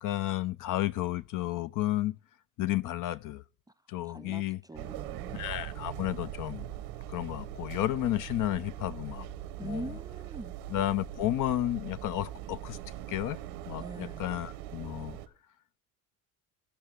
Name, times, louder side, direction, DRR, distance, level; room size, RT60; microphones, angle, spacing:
voice 1, 0.0-2.2 2.6-3.4 3.9-4.6 5.3-6.7 7.1-9.3 9.6-10.0 10.7-12.8 13.1-13.4 13.7-15.2, left 14 dB, 45° left, 0.5 m, -32 dB
voice 2, 4.0-4.4 4.7-5.5 9.6-10.5 13.8-14.3, right 2 dB, 10° right, 0.4 m, -42 dB
sound 1, 4.7-15.3, right 12 dB, 75° right, 1.0 m, -41 dB
16.5 x 5.7 x 3.2 m
hypercardioid pair, 65°, 43 cm